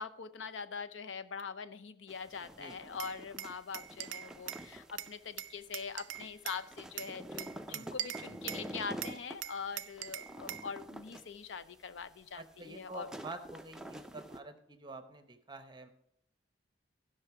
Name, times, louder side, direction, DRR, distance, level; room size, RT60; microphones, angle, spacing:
voice 1, 0.0-13.1, left 5 dB, 85° left, 13 dB, 0.6 m, -43 dB
sound 1, 2.1-14.4, equal, 5° right, 0.4 m, -48 dB
Glass, 3.0-4.7 5.0-6.6 7.0-8.7 9.0-10.7, right 13 dB, 90° right, 0.4 m, -42 dB
voice 2, 12.3-15.9, right 3 dB, 25° right, 9 dB, 0.8 m, -47 dB
15.5 x 5.6 x 4.7 m, 0.74 s
head